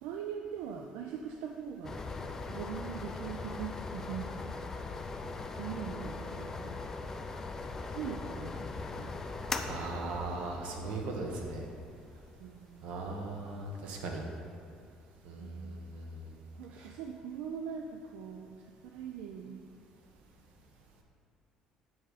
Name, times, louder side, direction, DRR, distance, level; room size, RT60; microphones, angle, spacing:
voice 1, 0.0-2.0 2.5-4.7 5.5-6.8 7.8-9.2 9.4-9.7 12.4-13.1 15.4-15.8 16.5-19.6, right 7 dB, 85° right, 3 dB, 0.4 m, -42 dB
sound 1, 1.8-14.3, left 3 dB, 20° left, 0.3 m, -40 dB
voice 2, 9.6-11.7 12.8-14.2 15.2-16.3 16.8-16.9, right 3 dB, 65° right, 1 dB, 1.1 m, -38 dB
7.8 x 5.0 x 4.0 m, 2.4 s
cardioid pair, 160°, 2 cm